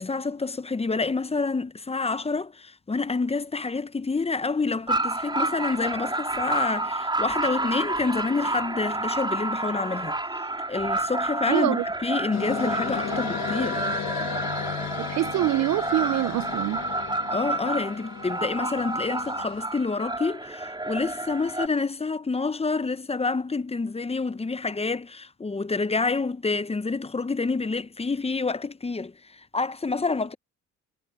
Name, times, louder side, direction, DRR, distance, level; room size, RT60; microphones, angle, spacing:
voice 1, 0.0-10.2 10.7-13.8 17.3-30.4, left 4 dB, 20° left, 0.9 m, -28 dB
sound 1, 4.9-21.7, right 2 dB, 15° right, 4.5 m, -30 dB
voice 2, 11.5-11.8 15.0-16.9, right 15 dB, 60° right, 0.5 m, -25 dB
sound 2, 12.3-19.6, left 9 dB, 55° left, 1.7 m, -35 dB
supercardioid pair, 70°, 32 cm